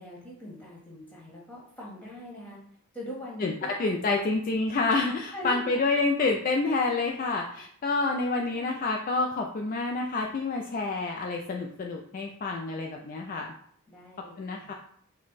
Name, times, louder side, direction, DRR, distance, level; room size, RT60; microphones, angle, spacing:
voice 1, 0.0-2.6 2.9-3.7 5.3-5.7 8.5-8.7 13.9-14.7, equal, 5° left, -5 dB, 1.4 m, -42 dB
voice 2, 3.8-13.5 14.4-14.7, left 3 dB, 40° left, 1 dB, 0.3 m, -28 dB
5.1 x 2.2 x 4.0 m, 0.63 s
head